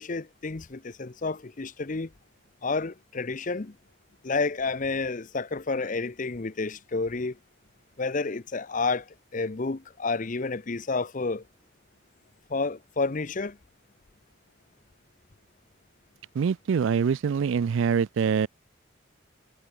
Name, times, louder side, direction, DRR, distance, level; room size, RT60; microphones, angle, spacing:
voice 1, 0.0-2.1 2.6-3.8 4.2-7.4 8.0-11.4 12.5-13.6, left 3 dB, 40° left, 0.7 m, -30 dB
voice 2, 16.4-18.5, right 6 dB, 70° right, 0.4 m, -24 dB
head